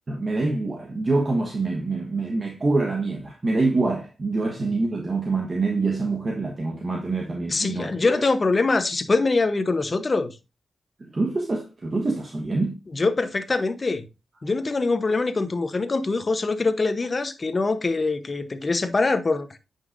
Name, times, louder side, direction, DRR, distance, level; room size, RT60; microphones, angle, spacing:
voice 1, 0.1-8.2 11.0-12.8, right 3 dB, 35° right, 1.3 m, -25 dB
voice 2, 7.5-10.4 12.9-14.1 14.4-19.5, left 3 dB, 35° left, 0.9 m, -23 dB
9.3 x 5.6 x 2.6 m
cardioid pair, 90°, 0 cm